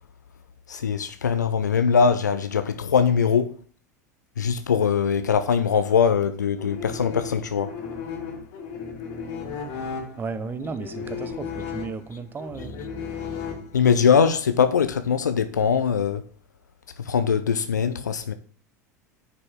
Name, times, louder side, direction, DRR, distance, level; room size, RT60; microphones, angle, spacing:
voice 1, 0.7-3.6 4.4-7.7 13.7-16.2 17.0-18.3, left 6 dB, 80° left, 0.6 m, -21 dB
sound 1, 6.6-14.1, left 6 dB, 50° left, 2.7 m, -35 dB
voice 2, 10.2-12.7, right 4 dB, 20° right, 0.9 m, -34 dB
9.6 x 5.3 x 3.6 m
figure-of-eight pair, 85°, 9 cm